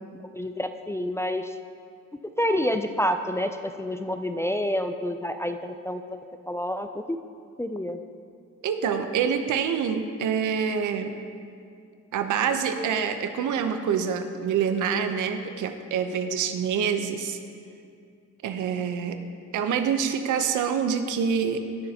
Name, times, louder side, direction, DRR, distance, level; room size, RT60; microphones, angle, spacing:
voice 1, 0.2-1.5 2.4-6.2 6.5-6.9 7.6-8.0, left 1 dB, 10° left, 7 dB, 0.4 m, -28 dB
voice 2, 8.6-11.1 12.1-17.4 18.4-19.2 19.5-21.6, right 7 dB, 80° right, 7 dB, 0.8 m, -26 dB
18.0 x 6.5 x 2.9 m, 2.4 s
cardioid pair, 90°, 30 cm